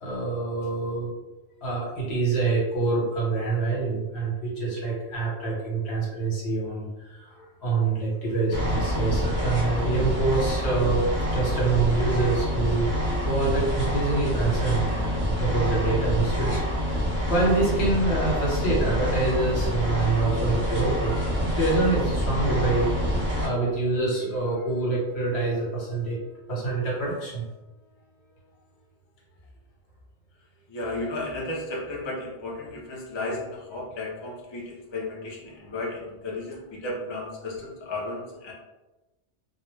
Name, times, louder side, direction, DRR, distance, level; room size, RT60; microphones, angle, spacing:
voice 1, 0.0-1.1 1.6-11.0 11.3-12.9 13.2-26.2 26.5-27.4 35.6-35.7, right 3 dB, 65° left, -5 dB, 1.2 m, -26 dB
sound 1, 8.5-23.5, equal, 15° right, 0.5 m, -26 dB
voice 2, 30.7-38.5, left 2 dB, 50° left, -2 dB, 0.3 m, -34 dB
2.2 x 2.1 x 3.1 m, 1.1 s
omnidirectional pair, 1.2 m